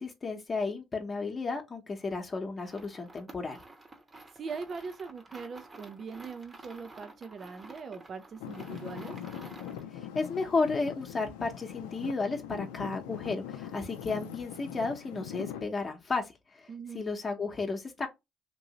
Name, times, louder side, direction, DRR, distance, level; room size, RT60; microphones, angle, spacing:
voice 1, 0.0-3.6 9.9-16.7 16.9-18.1, left 4 dB, 35° left, 0.9 m, -33 dB
sound 1, 2.6-9.9, right 2 dB, 30° right, 1.0 m, -51 dB
voice 2, 4.3-9.2 16.7-17.0, right 5 dB, 50° right, 0.5 m, -41 dB
Traffic noise roadway noise / Engine, 8.4-15.6, left 10 dB, 90° left, 0.5 m, -42 dB
3.0 x 2.6 x 2.9 m
supercardioid pair, 65°, 0 cm